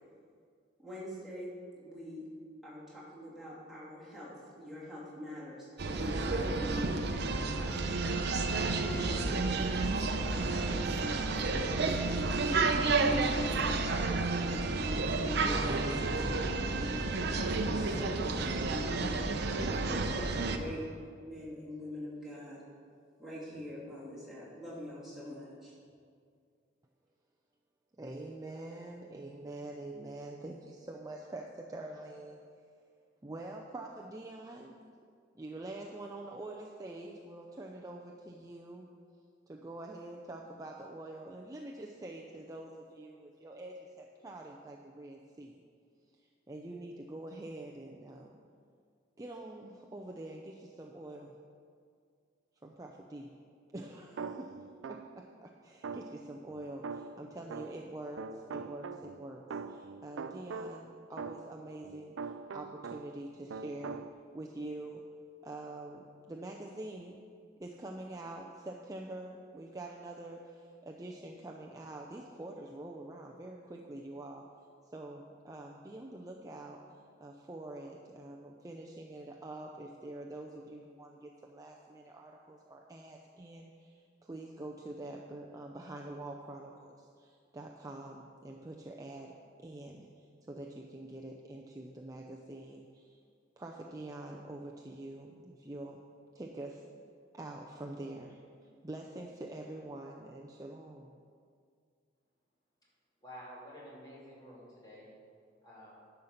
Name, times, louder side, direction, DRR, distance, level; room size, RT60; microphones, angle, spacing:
voice 1, 0.8-1.5 1.8-2.2 2.6-8.4 8.8-11.7 12.1-16.4 16.7-19.5 19.9-20.8 21.2-22.6 23.2-25.7, equal, ahead, -9 dB, 2.9 m, -44 dB
sound 1, 5.8-20.6, right 3 dB, 60° right, 0.7 m, -31 dB
voice 2, 27.9-32.4 33.2-34.8 35.3-38.9 39.5-45.6 46.2-48.4 49.2-51.4 52.6-53.4 53.7-54.6 54.9-65.1 65.4-67.2 67.6-74.5 74.9-76.9 77.2-93.2 93.6-96.0 96.3-96.9 97.3-98.4 98.8-101.1, right 2 dB, 20° right, 0 dB, 0.5 m, -45 dB
sound 2, 54.2-55.3 55.8-57.9 58.2-63.2 63.5-64.1, right 5 dB, 85° right, 0.4 m, -43 dB
voice 3, 103.2-105.1 105.6-105.9, equal, 20° left, -7 dB, 3.1 m, -50 dB
11.0 x 5.8 x 6.6 m, 2.2 s
head